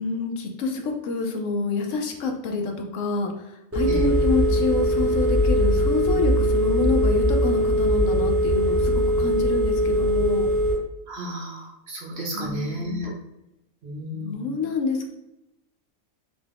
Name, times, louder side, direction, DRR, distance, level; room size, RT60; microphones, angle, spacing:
voice 1, 0.0-10.5 12.3-13.0 14.1-15.1, left 4 dB, 70° left, 3 dB, 0.9 m, -27 dB
Telephone, 3.7-10.7, equal, 15° right, 0.6 m, -21 dB
voice 2, 11.1-13.1 13.8-14.6, equal, 60° right, -1 dB, 0.7 m, -33 dB
2.9 x 2.3 x 3.3 m, 0.88 s
omnidirectional pair, 1.4 m